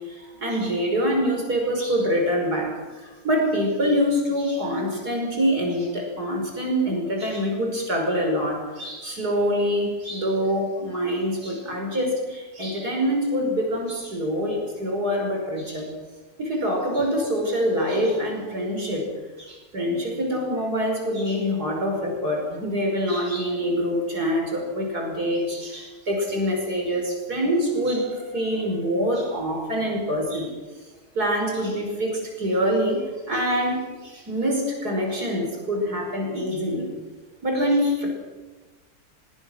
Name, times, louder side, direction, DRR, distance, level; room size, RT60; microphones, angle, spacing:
voice 1, 0.1-15.9 16.4-19.1 19.4-30.5 31.1-36.9 37.4-38.1, equal, 80° right, 1 dB, 6.1 m, -25 dB
24.0 x 22.5 x 6.5 m, 1.2 s
omnidirectional pair, 1.7 m